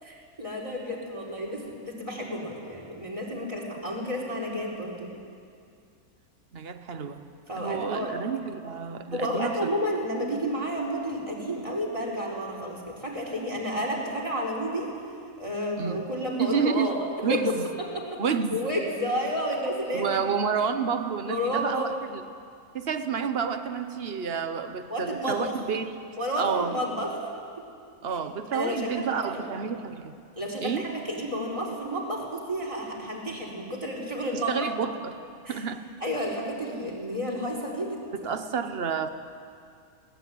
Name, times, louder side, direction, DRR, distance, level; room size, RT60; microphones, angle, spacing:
voice 1, 0.0-5.1 7.5-8.1 9.1-14.9 15.4-17.0 17.3-17.4 17.8-18.2 18.5-20.2 21.3-21.8 24.9-25.5 26.2-27.1 27.6-27.7 28.5-29.4 30.3-34.5 35.4-35.6 36.0-38.3, equal, 20° right, -2 dB, 4.5 m, -31 dB
voice 2, 6.5-7.3 7.6-9.6 15.8-16.0 16.4-17.7 18.2-18.7 19.9-22.2 22.7-26.0 26.4-26.8 28.0-30.1 30.6-30.8 34.3-35.2 35.5-35.8 38.2-39.1, right 6 dB, 45° right, 9 dB, 1.3 m, -29 dB
21.0 x 18.0 x 9.4 m, 2.3 s
omnidirectional pair, 1.5 m